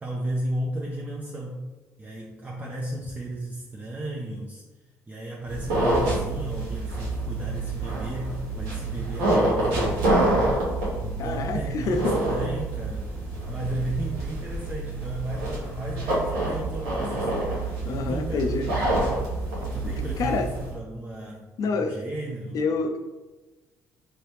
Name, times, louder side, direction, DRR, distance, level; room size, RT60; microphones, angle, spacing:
voice 1, 0.0-1.7 2.0-4.6 5.1-10.6 11.0-17.5 17.9-19.2 19.7-22.7, right 1 dB, 25° right, -1 dB, 0.5 m, -34 dB
sound 1, 5.5-20.7, right 2 dB, 90° right, 1.1 m, -27 dB
voice 2, 11.2-12.2 17.8-18.7 19.8-19.9 20.2-20.5 21.6-22.0 22.5-23.0, left 4 dB, 60° left, 6 dB, 0.4 m, -27 dB
3.1 x 2.9 x 3.2 m, 1.2 s
supercardioid pair, 70°, 7 cm